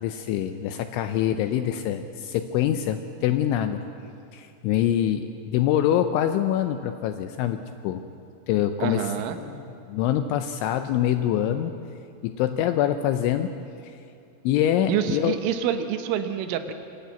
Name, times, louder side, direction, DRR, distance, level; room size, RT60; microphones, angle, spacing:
voice 1, 0.0-3.8 4.3-8.0 8.5-9.0 9.5-9.6 9.9-11.7 12.2-13.5 14.4-15.3, left 11 dB, 80° left, 8 dB, 2.8 m, -25 dB
voice 2, 8.8-9.4 14.9-16.7, right 9 dB, 75° right, 7 dB, 3.3 m, -27 dB
24.0 x 13.5 x 9.4 m, 2.6 s
omnidirectional pair, 6.0 m